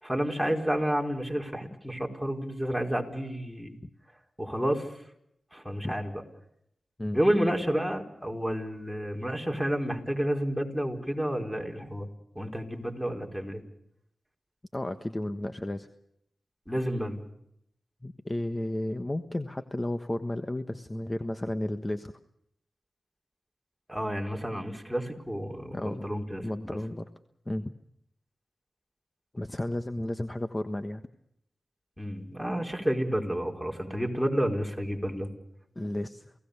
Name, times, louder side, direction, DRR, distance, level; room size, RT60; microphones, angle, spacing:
voice 1, 0.0-3.8 4.4-4.9 5.5-6.2 7.1-12.1 12.3-13.6 16.7-17.2 23.9-26.8 32.0-35.3, equal, ahead, 2 dB, 4.8 m, -30 dB
voice 2, 14.7-15.9 18.0-22.1 25.7-26.1 26.4-27.1 27.5-27.7 29.3-31.0 35.7-36.3, left 1 dB, 25° left, 8 dB, 1.3 m, -33 dB
28.5 x 17.5 x 6.9 m, 0.77 s
cardioid pair, 40°, 0 cm